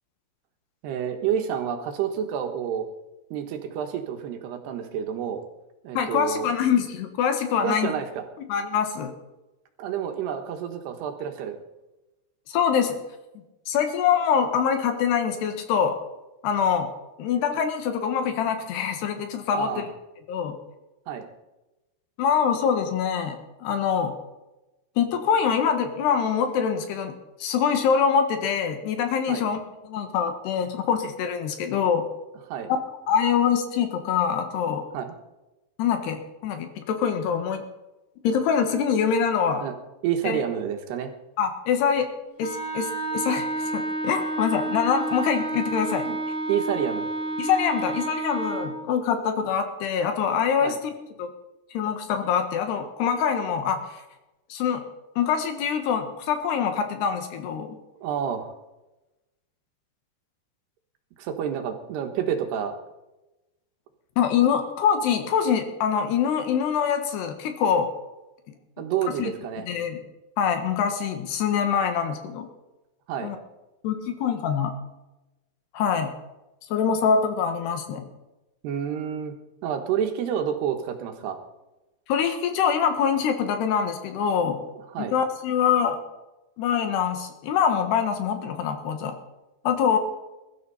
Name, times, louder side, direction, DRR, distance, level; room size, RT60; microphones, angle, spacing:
voice 1, 0.8-2.9 3.3-5.4 5.8-6.5 7.6-8.2 9.8-11.6 19.5-19.9 21.1-21.3 29.3-29.5 32.5-32.7 34.9-35.1 39.6-39.8 40.0-41.1 46.0-46.2 46.5-47.1 50.6-50.8 58.0-58.5 61.2-62.8 68.8-69.7 73.1-73.4 78.6-79.4 79.6-81.4 84.9-85.1, right 8 dB, 85° right, 5 dB, 3.5 m, -29 dB
voice 2, 6.0-7.9 8.5-9.1 12.5-13.0 13.7-16.0 16.4-16.9 17.2-19.9 20.3-20.6 22.2-24.1 25.0-27.1 27.4-32.0 32.7-32.8 33.1-34.8 35.8-37.6 38.2-39.7 40.2-40.4 41.4-42.1 42.4-46.0 47.4-50.9 51.2-51.3 51.7-53.8 54.5-54.8 55.2-57.8 64.2-67.9 69.2-69.3 69.7-70.0 70.4-72.5 73.2-73.4 73.8-74.7 75.7-76.1 76.7-78.1 82.1-84.6 85.0-86.0 86.6-89.2 89.7-90.0, left 7 dB, 80° left, 6 dB, 3.7 m, -24 dB
Wind instrument woodwind instrument, 42.4-48.8, right 2 dB, 50° left, 1.7 m, -30 dB
22.0 x 12.5 x 4.2 m, 1.0 s
omnidirectional pair, 4.7 m